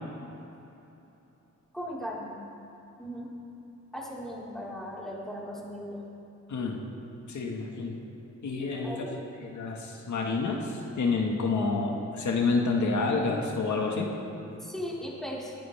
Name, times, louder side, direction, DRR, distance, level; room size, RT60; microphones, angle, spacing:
voice 1, 1.7-2.3 3.0-3.3 3.9-6.0 8.8-9.2 14.6-15.6, equal, ahead, -7 dB, 4.5 m, -37 dB
voice 2, 6.5-6.8 7.3-8.0 8.4-9.0 9.4-14.1, left 4 dB, 80° left, 0 dB, 1.8 m, -28 dB
22.0 x 17.0 x 3.5 m, 2.9 s
wide cardioid pair, 100°, 30 cm